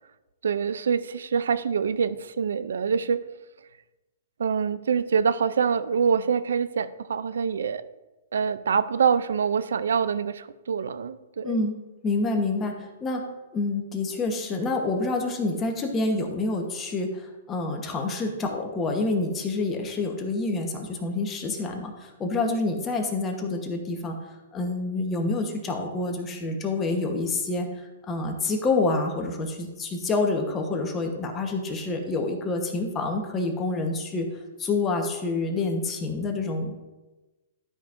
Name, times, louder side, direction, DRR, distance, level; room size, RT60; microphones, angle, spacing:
voice 1, 0.4-3.2 4.4-7.8 8.3-11.6, right 6 dB, 85° right, 15 dB, 0.4 m, -25 dB
voice 2, 11.4-11.8 12.0-24.1 24.5-34.3 34.6-36.7, left 3 dB, 20° left, 3 dB, 1.1 m, -27 dB
12.5 x 5.2 x 2.6 m, 1.1 s
hypercardioid pair, 140°, 0 cm